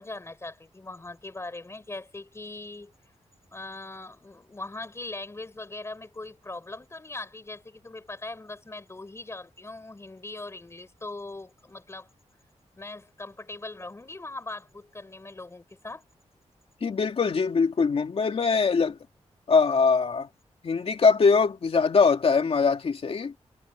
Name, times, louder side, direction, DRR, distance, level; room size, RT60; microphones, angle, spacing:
voice 1, 0.0-2.9 3.5-12.1 12.8-16.0, left 2 dB, 25° left, 4.5 m, -40 dB
voice 2, 16.8-19.0 19.5-20.3 20.6-23.3, left 5 dB, 55° left, 2.5 m, -22 dB
wide cardioid pair, 125°, 12 cm